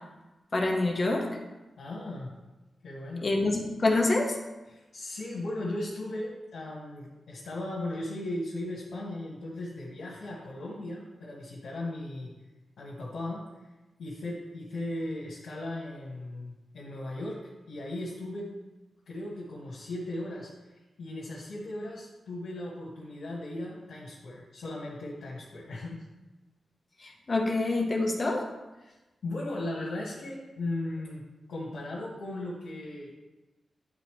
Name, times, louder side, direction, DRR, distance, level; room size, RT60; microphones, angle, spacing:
voice 1, 0.5-1.3 3.2-4.4 27.0-28.5, left 2 dB, 35° left, 1 dB, 1.0 m, -26 dB
voice 2, 1.8-2.3 2.8-3.3 4.7-12.3 12.8-13.4 14.0-17.4 17.6-18.5 19.1-20.5 21.0-26.0 28.8-29.0 29.2-31.2 31.5-33.2, left 1 dB, 85° left, -7 dB, 1.4 m, -37 dB
10.5 x 4.0 x 3.2 m, 1.1 s
wide cardioid pair, 120°, 0 cm